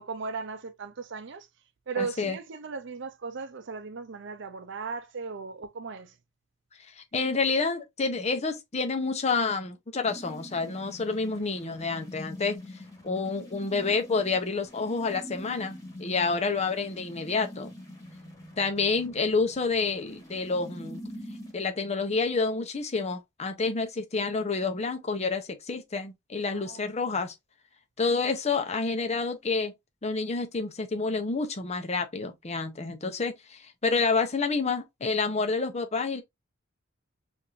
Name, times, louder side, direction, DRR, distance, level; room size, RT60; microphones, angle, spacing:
voice 1, 0.0-1.5 1.9-6.1 26.5-26.8, right 5 dB, 65° right, 0.6 m, -37 dB
voice 2, 2.0-2.4 7.0-12.6 13.0-15.7 16.0-17.7 18.6-21.0 21.5-27.3 28.0-29.7 30.0-36.2, left 4 dB, 35° left, 0.7 m, -28 dB
sound 1, 10.1-21.5, equal, 15° left, 1.6 m, -45 dB
4.8 x 2.6 x 2.6 m
head